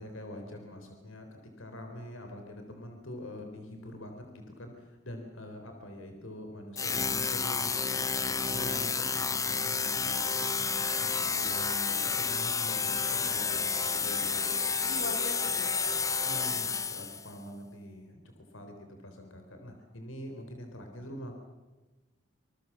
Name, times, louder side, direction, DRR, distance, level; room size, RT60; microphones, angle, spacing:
voice 1, 0.0-14.4 16.2-21.3, left 1 dB, 80° left, 4 dB, 3.8 m, -44 dB
sound 1, 6.8-17.3, left 5 dB, 15° left, 0.8 m, -30 dB
voice 2, 13.2-13.6 13.9-16.3, left 1 dB, 65° left, 4 dB, 4.3 m, -44 dB
26.5 x 20.5 x 7.3 m, 1.2 s
head